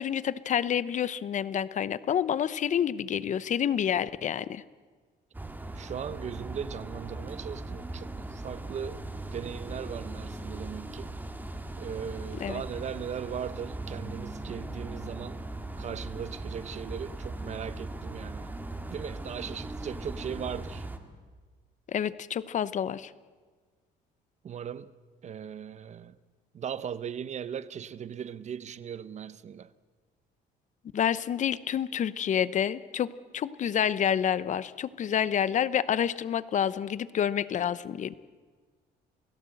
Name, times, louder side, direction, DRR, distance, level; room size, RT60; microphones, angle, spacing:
voice 1, 0.0-4.6 12.4-12.6 21.9-23.1 30.9-38.2, left 9 dB, 45° left, 0.9 m, -28 dB
sound 1, 5.3-21.0, right 2 dB, 10° right, 2.3 m, -39 dB
voice 2, 5.8-11.1 11.8-15.4 15.8-18.5 18.9-20.9 24.4-24.9 25.2-26.2 26.5-29.7, right 8 dB, 45° right, 1.0 m, -38 dB
29.0 x 17.0 x 7.8 m
cardioid pair, 110°, 17 cm